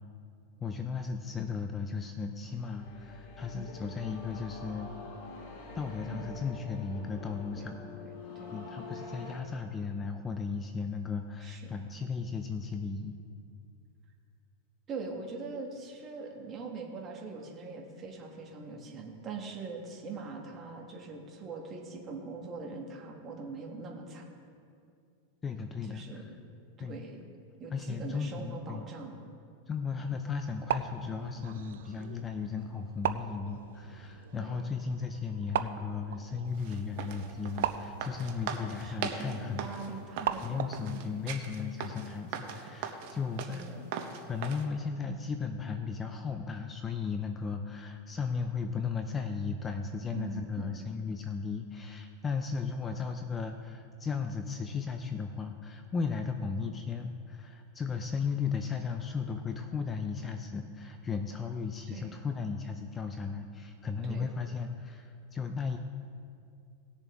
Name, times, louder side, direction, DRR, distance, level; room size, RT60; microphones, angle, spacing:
voice 1, 0.6-4.9 5.7-7.8 8.5-13.2 25.4-26.3 26.8-27.0 27.7-28.9 29.7-39.6 40.4-43.6 44.3-65.8, left 5 dB, 20° left, 6 dB, 0.5 m, -35 dB
sound 1, 2.4-9.4, left 3 dB, 60° left, 1.4 m, -46 dB
voice 2, 3.5-3.9 6.1-6.4 7.6-7.7 8.0-8.5 11.4-11.8 14.9-24.2 25.8-26.4 26.8-27.2 27.6-29.2 34.3-34.7 38.8-41.0 43.5-43.9 50.1-50.9 61.9-62.1 64.0-64.3, right 4 dB, 25° right, 0 dB, 1.6 m, -42 dB
sound 2, 30.4-41.0, right 10 dB, 80° right, 0.5 m, -39 dB
sound 3, 36.5-44.6, right 7 dB, 55° right, 1.0 m, -40 dB
18.0 x 6.9 x 3.5 m, 2.4 s
supercardioid pair, 145°, 0 cm